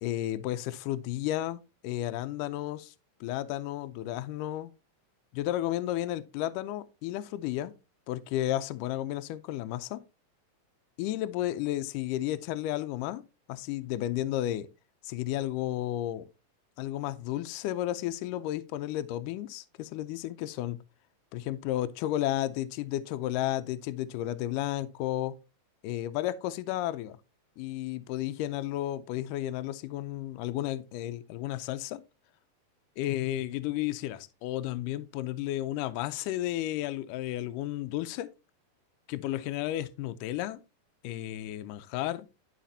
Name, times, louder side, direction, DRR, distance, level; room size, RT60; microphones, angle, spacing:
voice 1, 0.0-2.9 3.2-4.7 5.3-7.7 8.1-10.0 11.0-13.2 13.5-14.7 15.0-16.3 16.8-20.8 21.3-25.4 25.8-27.2 27.6-32.0 33.0-38.3 39.1-40.6 41.0-42.3, left 14 dB, 80° left, 2.1 m, -32 dB
11.5 x 5.1 x 2.7 m
omnidirectional pair, 3.9 m